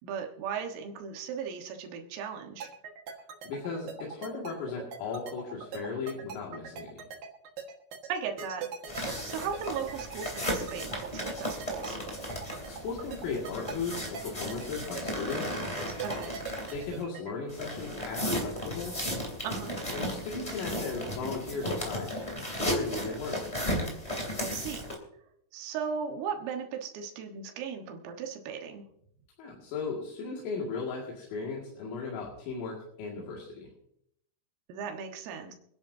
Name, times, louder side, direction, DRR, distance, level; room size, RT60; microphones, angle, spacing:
voice 1, 0.0-2.7 8.1-8.7 9.3-12.0 16.0-16.4 19.4-19.8 24.4-24.8 25.5-28.9 34.7-35.5, right 7 dB, 85° right, 3 dB, 4.1 m, -37 dB
sound 1, 2.6-17.3, right 6 dB, 60° right, 2.5 m, -41 dB
voice 2, 3.4-7.0 12.7-15.6 16.7-19.0 19.9-23.4 29.4-33.7, left 4 dB, 85° left, -3 dB, 4.8 m, -37 dB
sound 2, 8.9-17.0 17.5-24.9, equal, 10° left, 1.9 m, -35 dB
26.5 x 10.5 x 2.7 m, 0.72 s
omnidirectional pair, 5.8 m